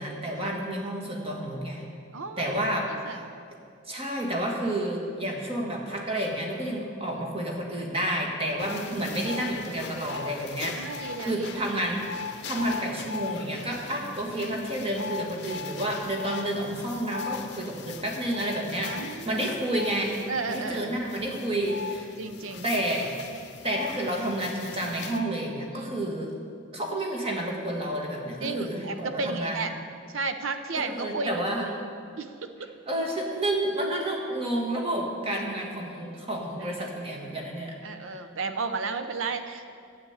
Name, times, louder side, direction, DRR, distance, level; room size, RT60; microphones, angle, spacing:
voice 1, 0.0-1.8 2.4-3.3 3.9-12.1 12.4-20.2 20.5-22.1 22.6-23.2 23.6-26.3 26.7-29.6 30.8-31.7 32.9-37.7 38.0-38.1, right 1 dB, 25° right, 0 dB, 1.6 m, -30 dB
voice 2, 2.1-3.3 7.0-7.1 8.8-9.1 10.8-11.7 14.0-14.4 18.8-19.5 20.3-21.0 22.2-22.7 25.7-26.0 28.4-29.7 30.1-31.3 31.7-31.8 32.2-32.7 36.6-36.9 37.8-39.8, right 4 dB, 70° right, 8 dB, 0.8 m, -34 dB
sound 1, 8.6-25.2, left 5 dB, 50° left, 0.7 m, -39 dB
10.0 x 8.2 x 8.1 m, 2.3 s
head